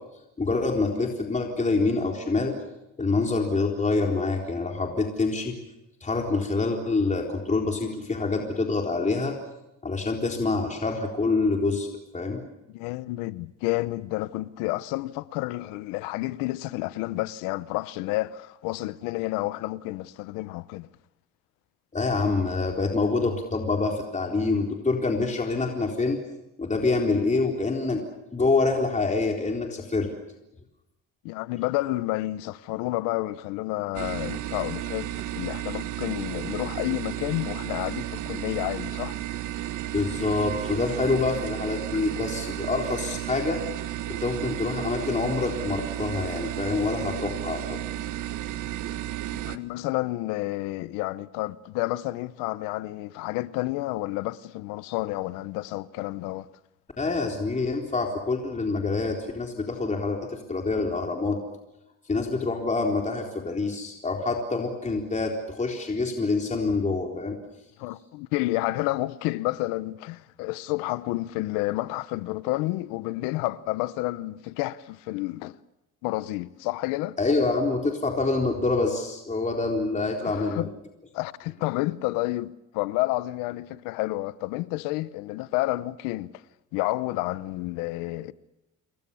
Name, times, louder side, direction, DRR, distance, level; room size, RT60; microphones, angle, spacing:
voice 1, 0.4-2.6 3.0-5.6 6.0-9.4 9.8-11.9 12.1-12.4 21.9-26.2 26.6-28.0 28.3-30.1 39.9-43.6 44.2-47.8 57.0-61.4 62.1-67.4 77.2-80.7, left 3 dB, 25° left, 4.0 m, -26 dB
voice 2, 12.7-20.9 31.2-39.2 49.3-56.5 67.8-75.6 76.0-77.2 80.2-80.7 81.1-86.4 86.7-88.3, left 18 dB, 90° left, 0.9 m, -30 dB
sound 1, 33.9-49.6, right 13 dB, 70° right, 1.5 m, -33 dB
28.0 x 22.0 x 7.1 m
supercardioid pair, 80°, 31 cm